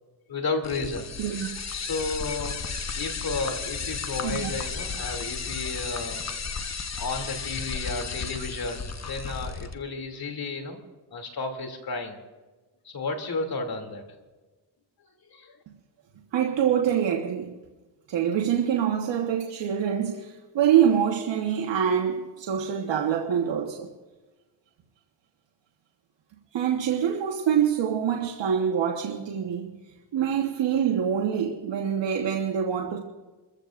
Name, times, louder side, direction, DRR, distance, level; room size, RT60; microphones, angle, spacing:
voice 1, 0.3-1.1 1.7-2.6 3.0-10.8 11.1-12.2 12.8-14.0 15.3-15.6, left 3 dB, 55° left, 2.9 m, -33 dB
sound 1, 0.6-9.7, left 5 dB, 35° left, 1.1 m, -34 dB
voice 2, 16.3-17.6 18.1-23.9 26.5-29.7 30.1-33.0, right 8 dB, 75° right, 1.4 m, -25 dB
28.5 x 15.0 x 2.6 m
cardioid pair, 70°, 44 cm